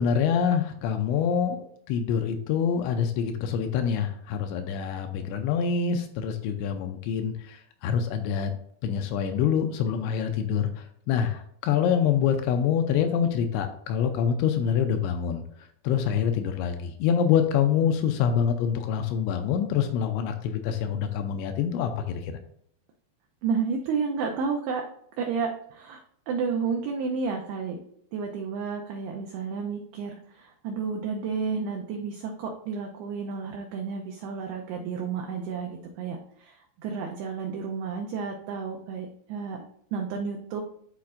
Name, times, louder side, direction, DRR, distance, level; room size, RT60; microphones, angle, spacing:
voice 1, 0.0-1.6 1.9-8.5 8.8-15.4 15.8-22.3, left 7 dB, 85° left, 6 dB, 2.7 m, -26 dB
voice 2, 23.4-24.8 25.2-26.0 26.3-40.6, right 5 dB, 85° right, 2 dB, 2.2 m, -31 dB
11.5 x 4.2 x 2.5 m, 0.66 s
omnidirectional pair, 5.4 m